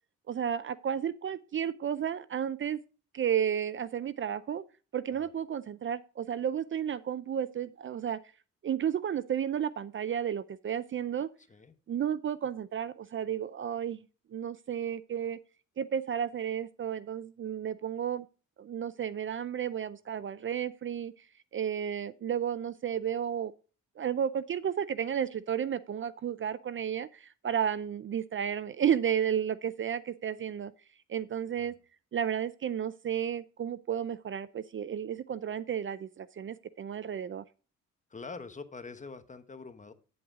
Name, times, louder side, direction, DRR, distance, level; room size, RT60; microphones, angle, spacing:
voice 1, 0.3-2.8 3.1-4.6 4.9-8.2 8.6-11.3 11.9-14.0 14.3-15.4 15.8-18.3 18.6-21.1 21.5-23.5 24.0-30.7 31.1-31.7 32.1-37.4, right 9 dB, 40° right, 0.5 m, -32 dB
voice 2, 38.1-39.9, left 4 dB, 25° left, 1.1 m, -45 dB
9.6 x 7.9 x 3.7 m
cardioid pair, 90°, 30 cm